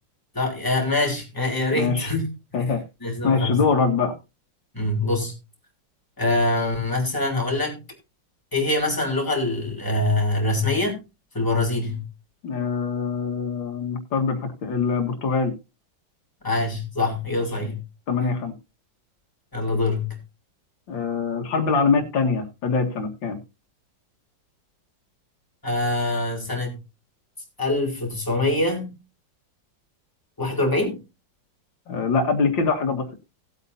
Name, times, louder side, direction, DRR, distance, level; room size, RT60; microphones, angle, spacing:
voice 1, 0.3-2.3 2.5-2.6 3.0-3.6 4.7-5.3 6.2-7.8 8.5-11.0 11.3-12.0 16.4-17.8 18.2-18.3 19.5-20.1 25.6-26.8 27.6-28.9 30.4-31.0, left 2 dB, 10° left, 3.4 m, -24 dB
voice 2, 1.7-2.1 2.5-2.8 3.2-4.1 12.4-15.5 17.6-17.7 18.1-18.6 20.9-23.4 31.9-33.1, left 5 dB, 85° left, 2.3 m, -23 dB
18.0 x 8.3 x 2.6 m
omnidirectional pair, 2.0 m